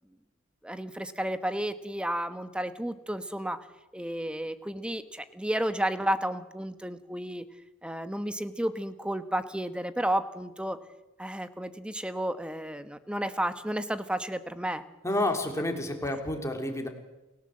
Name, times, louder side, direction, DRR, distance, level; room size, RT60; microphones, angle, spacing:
voice 1, 0.6-3.6 3.9-7.4 7.8-10.8 11.2-14.8, right 1 dB, 5° right, 11 dB, 1.2 m, -32 dB
voice 2, 15.0-16.9, left 1 dB, 15° left, 4 dB, 3.2 m, -29 dB
29.0 x 17.0 x 7.8 m, 1.0 s
head